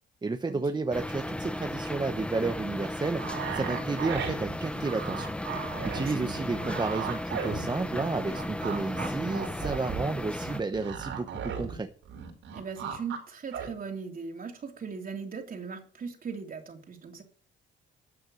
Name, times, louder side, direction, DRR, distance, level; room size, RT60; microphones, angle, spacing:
voice 1, 0.2-5.3 5.6-11.9, right 3 dB, 20° right, 8 dB, 0.9 m, -32 dB
sound 1, 0.9-10.6, left 1 dB, 5° left, 0.7 m, -35 dB
sound 2, 3.2-8.0 8.3-11.8 12.0-13.2 13.5-13.7, right 7 dB, 80° right, 4.9 m, -36 dB
voice 2, 6.0-6.5 12.5-17.2, right 5 dB, 45° right, 4 dB, 3.0 m, -39 dB
12.0 x 7.8 x 6.3 m, 0.43 s
cardioid pair, 90°, 20 cm